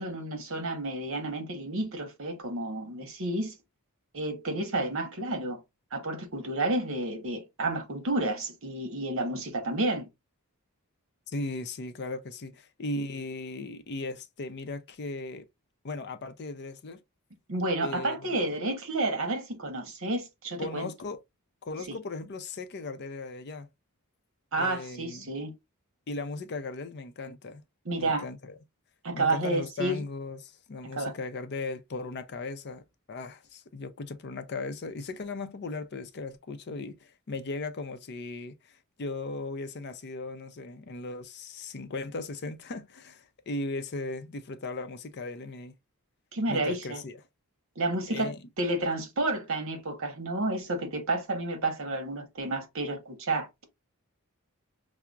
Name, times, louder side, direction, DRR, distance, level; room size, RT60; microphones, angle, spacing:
voice 1, 0.0-3.5 4.1-5.6 5.9-10.1 17.5-20.9 21.9-22.0 24.5-25.5 27.8-28.2 29.0-30.0 31.0-31.1 46.3-47.0 47.8-48.3 48.6-53.5, right 2 dB, 60° right, 1.1 m, -30 dB
voice 2, 11.3-15.5 15.8-17.0 17.8-18.7 20.6-21.2 21.6-23.7 24.5-25.3 26.1-27.6 28.0-28.6 29.1-45.7 46.5-47.2 48.1-48.4, left 3 dB, 50° left, 0.5 m, -37 dB
5.7 x 2.0 x 2.3 m
head